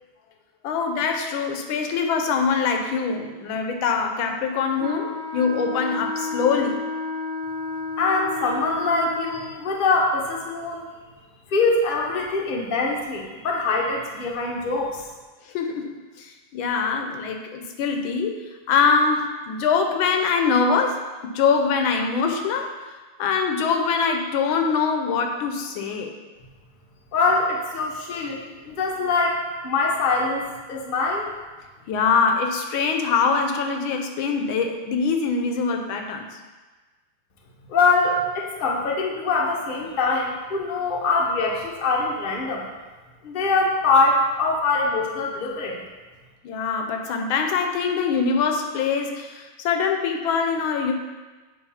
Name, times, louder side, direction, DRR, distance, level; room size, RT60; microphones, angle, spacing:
voice 1, 0.6-6.8 15.5-22.7 23.2-26.1 31.9-36.3 46.4-50.9, left 5 dB, 80° left, 4 dB, 1.4 m, -23 dB
Wind instrument woodwind instrument, 4.8-9.7, left 3 dB, 60° right, 0.9 m, -31 dB
voice 2, 8.0-10.8 11.5-15.0 27.1-28.4 28.6-29.4 29.6-31.3 37.7-42.6 43.2-45.8, left 3 dB, 40° left, -2 dB, 0.7 m, -23 dB
8.0 x 3.0 x 5.6 m, 1.3 s
omnidirectional pair, 2.2 m